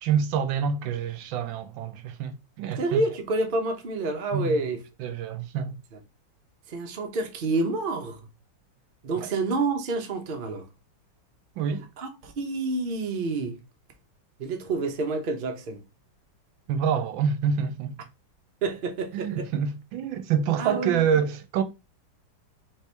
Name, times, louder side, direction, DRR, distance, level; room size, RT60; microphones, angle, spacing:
voice 1, 0.0-3.0 4.3-4.6 5.0-5.8 9.1-9.3 11.6-11.9 16.7-17.9 19.1-21.6, right 7 dB, 80° right, 1.3 m, -27 dB
voice 2, 2.8-4.8 6.7-8.2 9.0-10.7 12.0-13.6 14.4-15.8 18.6-19.5 20.6-21.1, right 3 dB, 50° right, 0.6 m, -28 dB
4.5 x 3.4 x 3.3 m
omnidirectional pair, 2.2 m